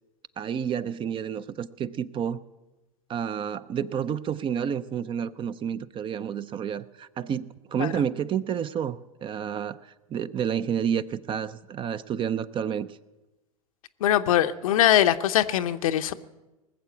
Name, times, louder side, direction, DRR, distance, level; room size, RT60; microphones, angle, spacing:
voice 1, 0.4-2.4 3.1-12.9, right 8 dB, 30° right, 15 dB, 0.5 m, -30 dB
voice 2, 14.0-16.1, left 12 dB, 75° left, 10 dB, 0.8 m, -22 dB
20.0 x 7.4 x 8.3 m, 1.1 s
hypercardioid pair, 95°, 18 cm